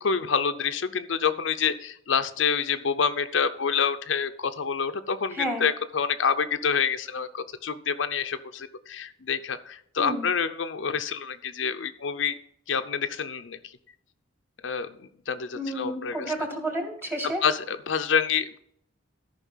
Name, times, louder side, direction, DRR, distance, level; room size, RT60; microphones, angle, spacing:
voice 1, 0.0-12.4 12.7-13.6 14.6-14.9 15.3-16.3 17.4-18.6, left 6 dB, 75° left, 9 dB, 0.6 m, -27 dB
voice 2, 5.3-5.7 10.0-10.3 15.5-17.4, equal, 10° right, 2 dB, 2.1 m, -31 dB
13.5 x 5.4 x 5.6 m, 0.69 s
head